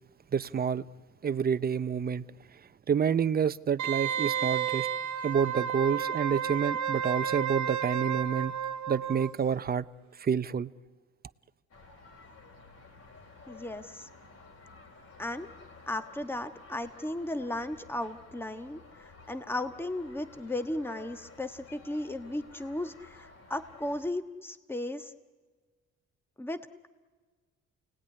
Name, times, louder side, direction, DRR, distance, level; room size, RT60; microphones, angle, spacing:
voice 1, 0.3-0.9 1.2-2.3 2.9-4.9 5.2-8.6 8.9-9.9 10.2-10.7, right 7 dB, 30° right, 0.7 m, -28 dB
Wind instrument woodwind instrument, 3.8-9.3 9.7-9.8, right 8 dB, 65° right, 1.0 m, -31 dB
sound 1, 11.7-24.1, left 3 dB, 55° left, 4.3 m, -53 dB
voice 2, 13.5-14.1 15.2-15.5 15.9-25.1 26.4-26.9, left 1 dB, 5° left, 1.4 m, -35 dB
29.0 x 19.0 x 9.8 m
cardioid pair, 90°, 30 cm